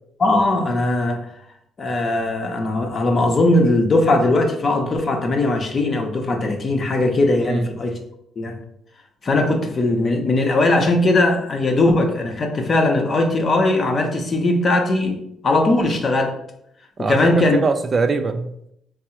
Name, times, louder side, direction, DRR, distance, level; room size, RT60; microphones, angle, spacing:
voice 1, 0.2-1.3 1.8-8.0 8.4-8.6 9.2-16.4 17.1-17.6, left 2 dB, 40° left, 4 dB, 0.7 m, -19 dB
voice 2, 17.0-18.7, right 4 dB, 40° right, 7 dB, 0.3 m, -22 dB
3.5 x 2.0 x 4.3 m, 0.73 s
cardioid pair, 90°, 0 cm